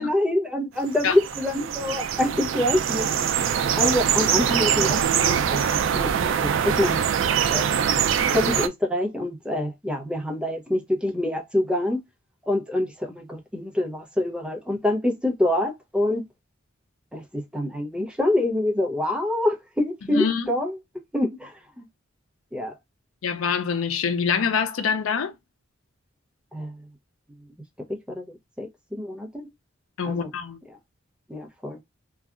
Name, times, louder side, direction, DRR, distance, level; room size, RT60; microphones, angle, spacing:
voice 1, 0.0-3.1 3.8-5.6 5.9-7.0 7.5-7.9 8.3-12.0 12.5-16.2 17.1-20.8 21.1-21.9 22.5-22.7 26.5-26.9 27.9-29.4 30.1-30.3 31.3-31.8, left 1 dB, 5° right, 0.6 m, -26 dB
sound 1, 0.9-8.7, right 8 dB, 65° right, 0.3 m, -23 dB
voice 2, 20.1-20.4 23.2-25.3 30.0-30.6, left 6 dB, 90° left, 0.5 m, -25 dB
2.7 x 2.3 x 2.3 m
head